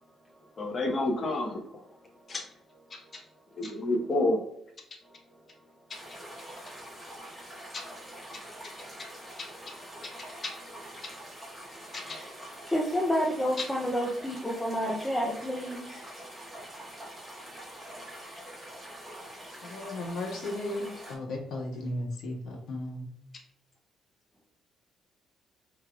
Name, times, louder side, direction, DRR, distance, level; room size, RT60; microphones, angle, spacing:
voice 1, 0.6-1.6 2.3-2.4 2.9-3.0 3.6-4.4 10.4-10.5 11.9-12.2, left 2 dB, 30° left, 0.9 m, -29 dB
voice 2, 5.0-5.4 6.5-7.1 10.0-10.2 12.0-12.2 12.7-16.0, equal, 5° left, 0.5 m, -31 dB
sound 1, 5.9-21.1, right 1 dB, 15° right, 1.4 m, -45 dB
voice 3, 19.6-23.1, left 1 dB, 70° left, 1.4 m, -35 dB
5.0 x 3.2 x 2.3 m
cardioid pair, 160°, 0 cm